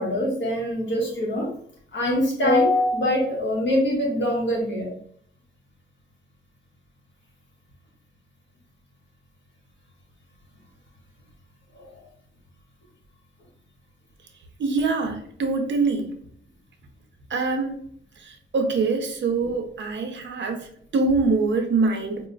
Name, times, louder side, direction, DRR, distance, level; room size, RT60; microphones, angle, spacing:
voice 1, 0.0-1.5 1.9-4.9 11.7-11.8, left 1 dB, 65° left, -2 dB, 1.4 m, -23 dB
voice 2, 14.6-16.2 17.3-17.8 18.2-22.3, right 3 dB, 65° right, 4 dB, 0.8 m, -24 dB
5.0 x 2.9 x 2.5 m, 0.63 s
wide cardioid pair, 120°, 20 cm